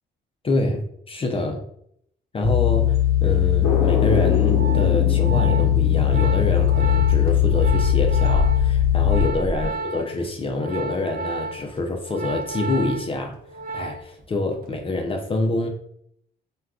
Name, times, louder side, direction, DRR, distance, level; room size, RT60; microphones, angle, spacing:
voice 1, 0.4-1.6 2.3-13.4 13.7-15.7, left 2 dB, 30° left, 3 dB, 0.4 m, -26 dB
sound 1, 2.4-9.3, left 13 dB, 75° right, 1.0 m, -20 dB
sound 2, 3.6-9.7, left 2 dB, 75° left, 0.6 m, -26 dB
Organ, 4.2-14.2 14.5-14.8, right 4 dB, 50° right, 0.7 m, -33 dB
3.4 x 2.3 x 2.3 m, 0.69 s
cardioid pair, 90°, 20 cm